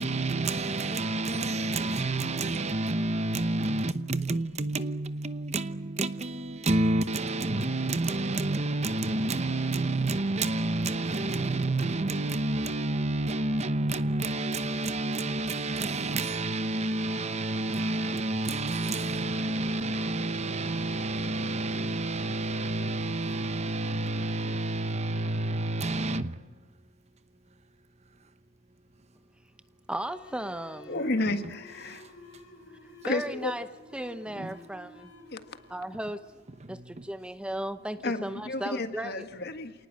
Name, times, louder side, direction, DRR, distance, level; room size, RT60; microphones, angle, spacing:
voice 1, 0.0-26.4 34.4-34.5 36.6-37.0, right 2 dB, 35° right, 0.9 m, -29 dB
voice 2, 29.9-31.0 33.0-35.1 35.7-36.2 36.7-39.3, right 1 dB, 5° right, 0.8 m, -36 dB
sound 1, 30.0-37.2, left 1 dB, 70° left, 3.5 m, -52 dB
voice 3, 30.9-32.1 33.0-33.5 35.3-35.4 38.0-39.7, left 2 dB, 55° left, 1.7 m, -31 dB
27.5 x 19.0 x 8.8 m
head